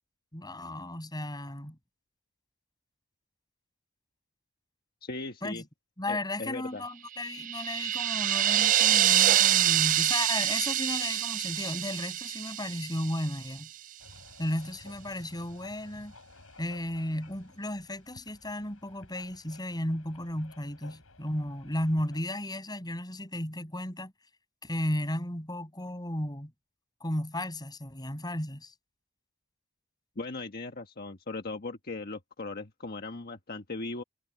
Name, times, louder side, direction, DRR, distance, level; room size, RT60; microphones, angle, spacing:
voice 1, 0.3-1.8 5.4-5.6 6.0-13.7 14.4-16.1 16.6-24.1 24.6-26.5 27.0-28.7, left 1 dB, 20° left, 6.8 m, -34 dB
voice 2, 5.0-5.6 6.1-6.8 30.1-34.0, left 3 dB, 50° left, 1.4 m, -38 dB
sound 1, 7.2-13.4, right 12 dB, 40° right, 0.3 m, -26 dB
sound 2, 14.0-22.2, left 2 dB, 90° left, 5.8 m, -54 dB
head